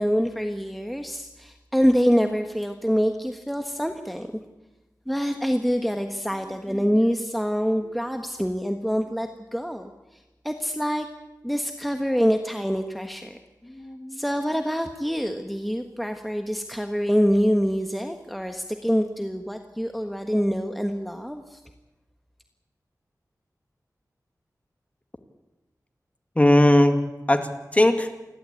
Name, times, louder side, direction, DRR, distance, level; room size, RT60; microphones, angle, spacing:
voice 1, 0.0-4.3 5.1-9.9 10.4-11.1 11.4-13.4 14.1-21.6, equal, ahead, 5 dB, 1.4 m, -25 dB
voice 2, 6.7-7.0 13.6-14.2 26.4-27.0 27.3-28.1, left 1 dB, 20° left, 6 dB, 2.2 m, -20 dB
28.5 x 12.0 x 8.4 m, 1.0 s
wide cardioid pair, 60°, 7 cm